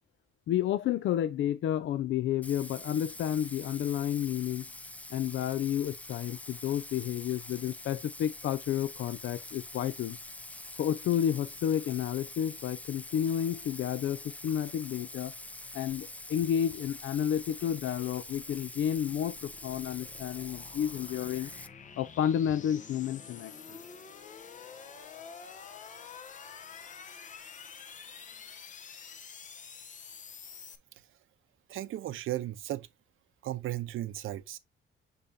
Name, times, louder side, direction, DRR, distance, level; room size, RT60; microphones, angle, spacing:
voice 1, 0.5-4.6 5.1-10.2 10.8-15.3 15.7-21.5 22.0-23.8, left 10 dB, 70° left, 0.5 m, -31 dB
Bathtub (filling or washing), 2.4-21.7, left 2 dB, 5° left, 0.3 m, -45 dB
sound 1, 17.6-30.8, left 6 dB, 40° left, 0.8 m, -48 dB
voice 2, 31.7-32.9 33.4-34.6, right 14 dB, 85° right, 0.8 m, -35 dB
6.7 x 5.2 x 2.7 m
wide cardioid pair, 175°, 20 cm